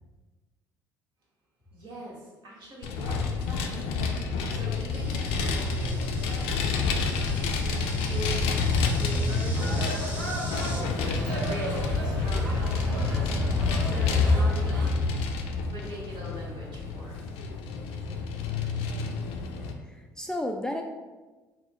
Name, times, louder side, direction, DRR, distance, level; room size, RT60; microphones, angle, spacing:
voice 1, 1.7-4.2 4.5-6.7 7.2-8.4 8.9-10.2 10.7-13.2 13.7-14.9 15.6-17.3, right 1 dB, 55° right, -4 dB, 1.5 m, -42 dB
Vehicle, 2.8-19.7, left 4 dB, 65° left, 0.5 m, -28 dB
Insect, 4.9-10.8, equal, 15° right, 1.3 m, -44 dB
sound 1, 9.5-14.9, equal, 75° right, 0.9 m, -33 dB
voice 2, 19.8-20.8, left 1 dB, 5° left, 2 dB, 0.4 m, -32 dB
3.9 x 2.3 x 4.2 m, 1.2 s
hypercardioid pair, 55°, 10 cm